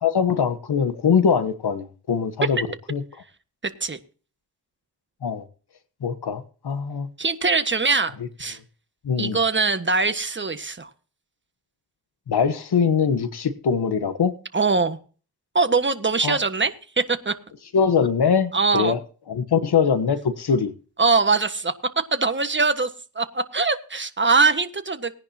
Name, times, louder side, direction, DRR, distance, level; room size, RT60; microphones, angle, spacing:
voice 1, 0.0-2.6 2.9-3.0 5.2-5.4 6.0-7.1 9.0-9.4 12.3-14.3 16.2-16.4 17.7-19.0 19.3-20.7, left 6 dB, 70° left, 1.2 m, -22 dB
voice 2, 3.6-4.0 7.2-8.1 8.4-8.6 9.2-10.9 14.5-15.0 15.5-17.3 18.5-18.9 21.0-22.9 23.1-25.1, right 4 dB, 30° right, 1.5 m, -22 dB
19.0 x 10.5 x 2.8 m
cardioid pair, 50°, 40 cm